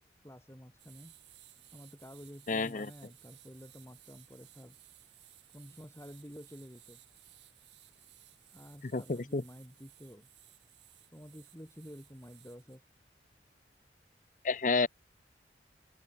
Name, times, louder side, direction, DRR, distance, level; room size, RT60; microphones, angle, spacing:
voice 1, 0.2-1.1 1.7-4.8 5.5-7.0 8.5-10.3 11.1-12.8, equal, 15° left, 7.7 m, -50 dB
sound 1, 0.8-12.8, right 15 dB, 75° right, 4.5 m, -60 dB
voice 2, 2.5-2.9 8.8-9.4 14.4-14.9, left 4 dB, 45° left, 0.7 m, -30 dB
open air
head